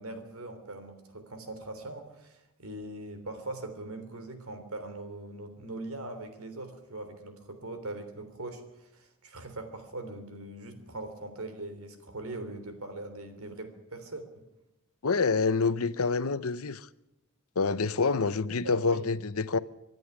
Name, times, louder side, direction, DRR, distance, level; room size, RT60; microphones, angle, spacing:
voice 1, 0.0-14.4 18.6-19.1, right 2 dB, 75° right, 3.3 m, -41 dB
voice 2, 15.0-16.9 17.6-19.6, left 4 dB, 75° left, 0.8 m, -27 dB
25.0 x 11.0 x 9.7 m
head